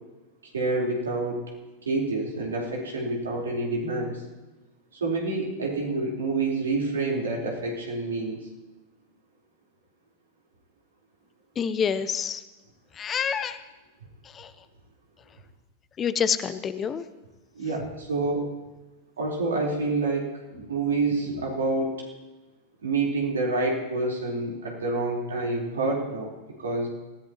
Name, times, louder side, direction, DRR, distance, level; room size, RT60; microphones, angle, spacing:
voice 1, 0.5-1.4 1.8-4.2 5.0-8.5 17.5-18.5 19.2-21.9 22.8-26.3 26.6-26.9, right 3 dB, 70° right, -2 dB, 4.3 m, -27 dB
voice 2, 11.6-12.4 13.0-13.6 14.3-14.5 16.0-17.0, left 7 dB, 25° left, 14 dB, 0.7 m, -27 dB
26.0 x 16.5 x 3.1 m, 1.1 s
figure-of-eight pair, 90°, 0 cm